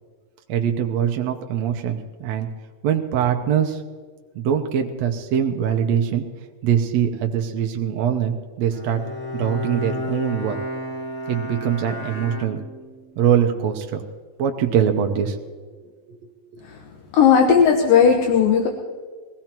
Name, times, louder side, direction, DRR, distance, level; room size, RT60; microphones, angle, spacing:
voice 1, 0.5-2.5 2.8-3.8 4.4-6.2 6.6-9.0 9.3-10.6 11.3-12.6 13.2-14.0 14.4-15.4 15.8-16.2, right 8 dB, 70° right, 3 dB, 1.6 m, -22 dB
Bowed string instrument, 8.7-13.1, equal, 50° left, 0.7 m, -32 dB
voice 2, 17.1-18.7, left 7 dB, 75° left, 1 dB, 2.8 m, -15 dB
23.5 x 17.5 x 3.0 m, 1.5 s
omnidirectional pair, 4.1 m